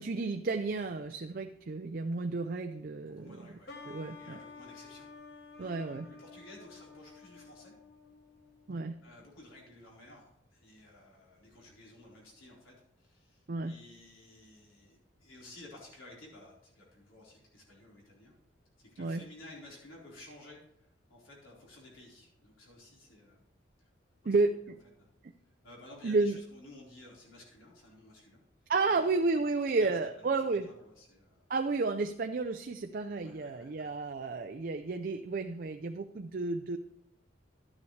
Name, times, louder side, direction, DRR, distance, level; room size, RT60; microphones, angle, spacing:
voice 1, 0.0-3.4 3.9-4.4 5.6-6.1 8.7-8.9 13.5-13.7 19.0-19.2 24.3-24.8 26.0-26.4 28.7-30.7 31.5-36.8, right 3 dB, 45° right, 6 dB, 0.4 m, -32 dB
voice 2, 3.0-5.1 5.5-7.7 9.0-18.3 18.8-23.4 23.8-23.9 24.2-24.3 25.0-25.1 25.6-28.4 28.8-31.4 33.2-33.9, left 1 dB, 90° left, -4 dB, 4.2 m, -54 dB
sound 1, 3.7-9.1, left 4 dB, 55° left, 1.1 m, -51 dB
12.0 x 9.6 x 3.2 m, 0.76 s
head